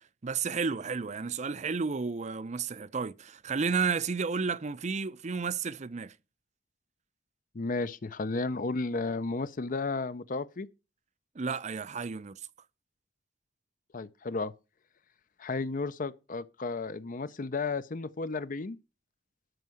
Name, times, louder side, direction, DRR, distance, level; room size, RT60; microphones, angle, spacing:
voice 1, 0.2-6.1 11.3-12.4, right 5 dB, 40° right, 0.5 m, -32 dB
voice 2, 7.5-10.7 13.9-14.5 15.4-18.8, left 3 dB, 50° left, 0.6 m, -33 dB
13.0 x 4.7 x 7.8 m
head